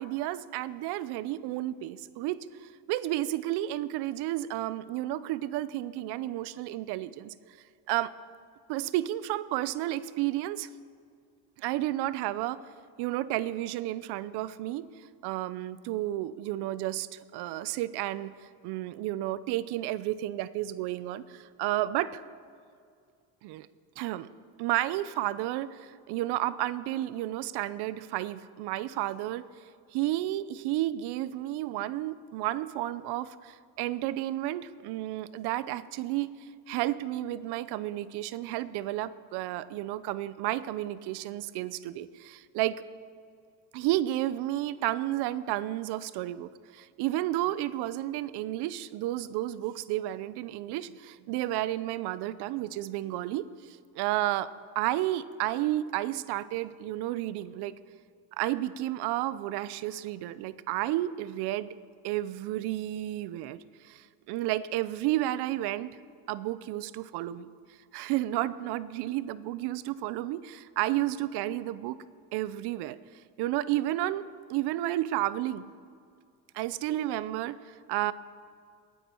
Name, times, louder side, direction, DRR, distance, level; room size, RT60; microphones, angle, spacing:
voice 1, 0.0-7.3 7.9-8.1 8.7-10.7 11.6-12.6 13.0-14.9 15.2-18.3 18.6-22.2 23.4-23.7 24.0-24.3 24.6-29.4 29.9-36.3 36.7-42.8 43.7-54.5 54.7-57.7 58.4-61.8 62.0-65.9 66.3-67.5 67.9-72.0 72.3-73.0 73.4-75.7 76.5-78.1, right 15 dB, 85° right, 16 dB, 0.6 m, -32 dB
20.5 x 9.2 x 4.4 m, 2.3 s
cardioid pair, 120°, 38 cm